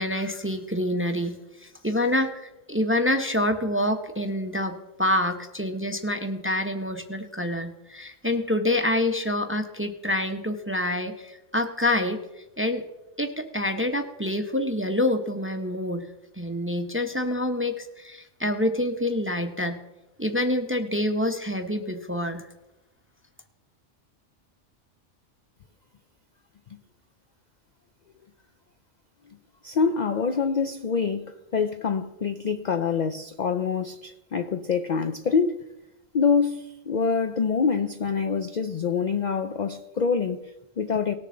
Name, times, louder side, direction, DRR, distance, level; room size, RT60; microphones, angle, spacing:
voice 1, 0.0-12.8 13.2-16.1 16.4-19.8 20.2-22.5, left 1 dB, 15° right, 0.6 m, -27 dB
voice 2, 29.6-35.6 36.1-41.1, left 5 dB, 55° left, 0.5 m, -25 dB
19.5 x 6.7 x 3.8 m
omnidirectional pair, 1.3 m